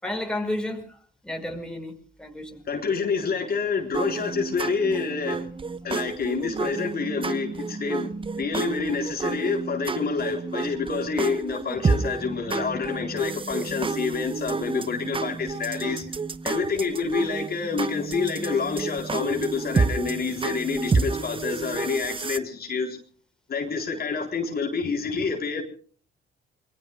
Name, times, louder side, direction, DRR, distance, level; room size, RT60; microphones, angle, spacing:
voice 1, 0.0-0.8 1.2-2.6, left 1 dB, 5° left, 5.3 m, -31 dB
voice 2, 2.7-5.5 5.8-16.1 16.4-23.0 23.5-25.6, left 5 dB, 50° left, 3.9 m, -28 dB
sound 1, 3.9-22.4, right 4 dB, 25° right, 1.0 m, -30 dB
28.5 x 21.5 x 2.4 m
cardioid pair, 90°, 20 cm